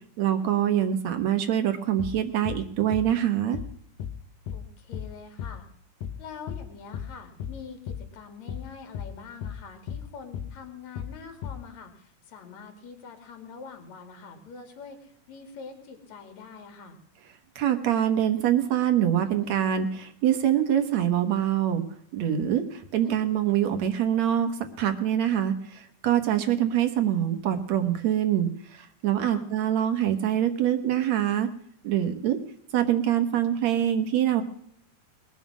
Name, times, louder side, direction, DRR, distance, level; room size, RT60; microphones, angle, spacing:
voice 1, 0.2-3.6 17.6-21.8 22.1-31.5 31.8-32.4 32.7-34.4, right 10 dB, 60° right, 7 dB, 2.3 m, -25 dB
sound 1, 2.0-2.2 2.5-2.7 2.9-3.1 3.5-3.7 4.0-4.2 4.5-4.7 4.9-5.1 5.4-5.6 6.0-6.2 6.5-6.7 6.9-7.1 7.4-7.6 7.9-8.1 8.5-8.7 8.9-9.1 9.4-9.6 9.9-10.1 10.3-10.5 11.0-11.2 11.4-11.6, left 8 dB, 75° left, 2.7 m, -35 dB
voice 2, 4.5-5.7 6.2-17.0 29.2-29.4, left 5 dB, 55° left, 6 dB, 3.6 m, -44 dB
21.5 x 7.4 x 6.2 m, 0.67 s
omnidirectional pair, 3.9 m